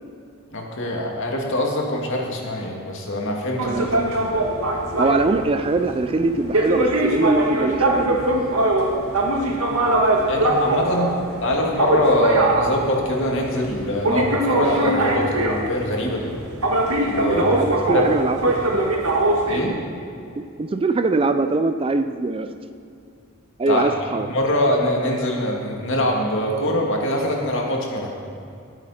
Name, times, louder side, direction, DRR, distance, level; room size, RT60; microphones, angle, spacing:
voice 1, 0.5-3.9 4.3-4.4 10.3-11.1 11.4-16.3 17.1-17.5 17.9-18.1 19.5-19.8 23.7-23.8 24.3-28.1, left 1 dB, 60° left, 0 dB, 2.1 m, -23 dB
voice 2, 3.6-4.1 5.0-8.2 17.2-18.5 20.4-22.5 23.6-24.3, right 3 dB, 25° right, 9 dB, 0.4 m, -22 dB
sound 1, 3.6-19.7, right 1 dB, 80° right, 1.7 m, -22 dB
18.0 x 9.0 x 4.3 m, 2.5 s
head